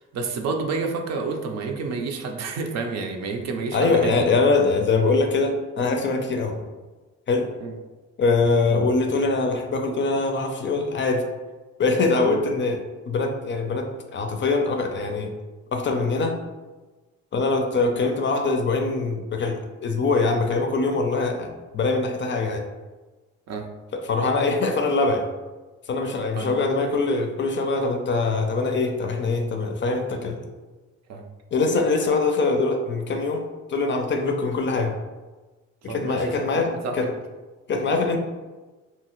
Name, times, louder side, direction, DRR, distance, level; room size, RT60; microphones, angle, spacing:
voice 1, 0.0-4.3 7.6-7.7 12.2-12.4 23.5-23.7 26.4-26.6 31.1-31.2 35.9-37.0, right 4 dB, 60° right, 3 dB, 0.5 m, -29 dB
voice 2, 3.7-6.7 7.3-7.5 8.2-11.2 11.8-15.3 15.7-16.4 17.3-22.7 23.9-25.3 25.9-30.5 31.5-35.0 35.8-37.1 37.7-38.2, left 3 dB, 40° left, 4 dB, 0.4 m, -23 dB
2.7 x 2.4 x 3.0 m, 1.2 s
cardioid pair, 90°, 30 cm